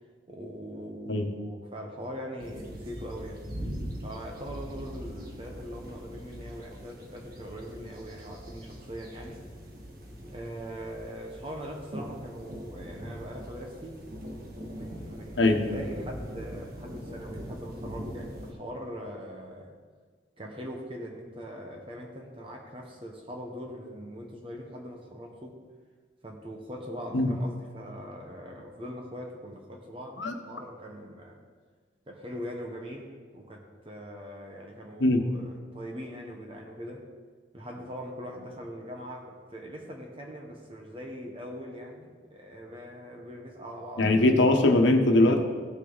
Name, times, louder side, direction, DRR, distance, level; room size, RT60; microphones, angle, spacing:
voice 1, 0.3-3.4 4.0-9.4 10.3-14.0 14.7-19.7 20.4-25.6 26.2-31.4 32.1-37.0 37.5-44.1 44.4-44.5, equal, 30° right, 0 dB, 1.2 m, -41 dB
sound 1, 2.4-18.5, equal, 50° right, 1.7 m, -41 dB
voice 2, 44.0-45.4, left 2 dB, 80° left, 5 dB, 1.2 m, -21 dB
16.0 x 6.3 x 4.1 m, 1.6 s
head